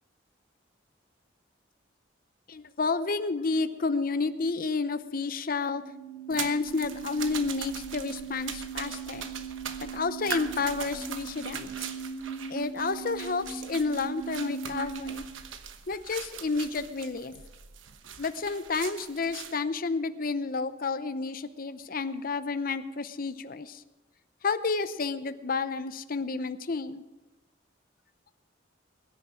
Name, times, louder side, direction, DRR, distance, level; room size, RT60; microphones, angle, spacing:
voice 1, 2.5-5.8 6.3-9.3 9.8-11.9 12.5-15.2 15.9-17.3 18.2-23.8 24.4-27.0, left 4 dB, 50° left, 11 dB, 0.7 m, -30 dB
sound 1, 5.6-15.2, right 6 dB, 15° left, 2.2 m, -40 dB
sound 2, 6.3-19.5, right 7 dB, 90° right, 1.1 m, -41 dB
21.5 x 10.0 x 5.0 m, 1.1 s
head